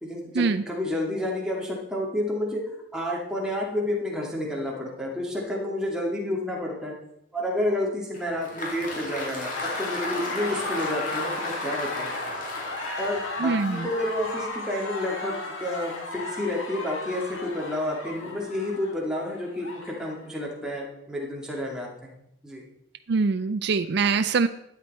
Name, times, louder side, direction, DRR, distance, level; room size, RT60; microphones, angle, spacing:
voice 1, 0.0-2.6 2.9-6.9 7.3-9.5 9.8-12.2 13.0-22.1 22.4-22.6, left 1 dB, 5° right, -3 dB, 2.2 m, -30 dB
Applause, 8.1-14.4, left 2 dB, 40° left, 2.1 m, -35 dB
sound 1, 9.5-20.3, left 2 dB, 80° left, 2.1 m, -35 dB
voice 2, 13.4-13.9 23.1-24.5, right 4 dB, 55° right, 9 dB, 0.4 m, -23 dB
12.5 x 8.8 x 4.3 m, 0.81 s
head